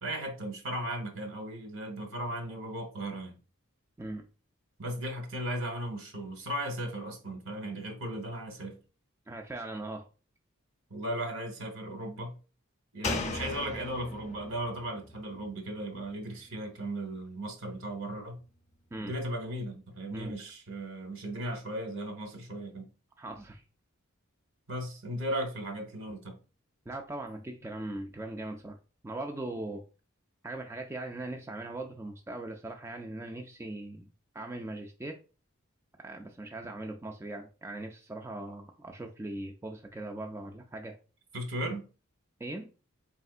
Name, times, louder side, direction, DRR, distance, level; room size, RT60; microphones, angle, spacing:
voice 1, 0.0-3.4 4.8-8.8 10.9-12.4 12.9-18.4 19.0-22.9 24.7-26.4 41.3-41.8, right 1 dB, 65° right, 1.2 m, -36 dB
voice 2, 9.3-10.1 18.9-19.1 20.1-20.3 23.2-23.6 26.9-28.8 29.0-29.8 30.4-34.1 34.3-35.2 36.0-41.0 42.4-42.7, right 2 dB, 10° right, 0.3 m, -40 dB
Slam, 13.0-16.5 16.8-16.9, left 2 dB, 35° left, 0.6 m, -38 dB
4.3 x 3.5 x 2.4 m
head